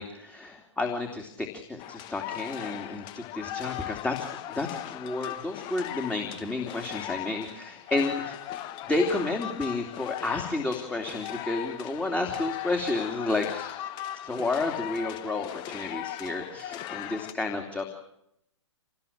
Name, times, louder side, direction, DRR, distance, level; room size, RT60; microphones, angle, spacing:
voice 1, 0.0-4.3 4.5-8.4 8.9-13.7 14.1-17.9, left 2 dB, 5° left, 3 dB, 3.2 m, -31 dB
sound 1, 1.8-17.3, left 12 dB, 30° left, 1.5 m, -38 dB
27.5 x 19.5 x 8.8 m, 0.79 s
figure-of-eight pair, 120°, 15 cm